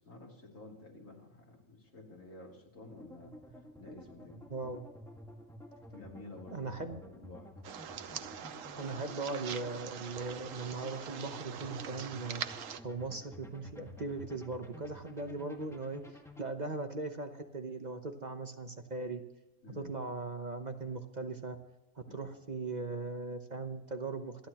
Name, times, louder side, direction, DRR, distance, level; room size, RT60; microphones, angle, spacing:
voice 1, 0.0-4.5 5.9-7.5 19.6-19.9 22.0-22.3, left 2 dB, 80° left, -1 dB, 3.3 m, -52 dB
sound 1, 2.9-16.4, left 1 dB, ahead, 1.7 m, -52 dB
voice 2, 4.5-4.8 6.5-7.0 8.8-12.4 12.8-19.2 19.7-21.6 21.9-24.5, right 3 dB, 35° right, 6 dB, 1.0 m, -39 dB
sound 2, 7.6-12.8, right 8 dB, 80° right, 1.2 m, -43 dB
27.5 x 11.0 x 3.0 m, 0.95 s
omnidirectional pair, 1.3 m